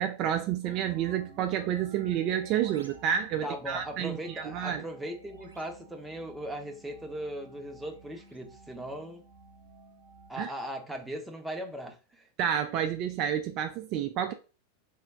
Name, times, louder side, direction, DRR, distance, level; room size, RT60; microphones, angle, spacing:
voice 1, 0.0-4.8 10.4-10.5 12.4-14.3, right 9 dB, 40° right, 0.3 m, -30 dB
sound 1, 0.6-10.3, right 2 dB, 75° right, 0.7 m, -52 dB
voice 2, 3.4-9.2 10.3-12.3, right 1 dB, 5° right, 0.7 m, -38 dB
3.4 x 2.2 x 3.6 m
figure-of-eight pair, 90°, 0 cm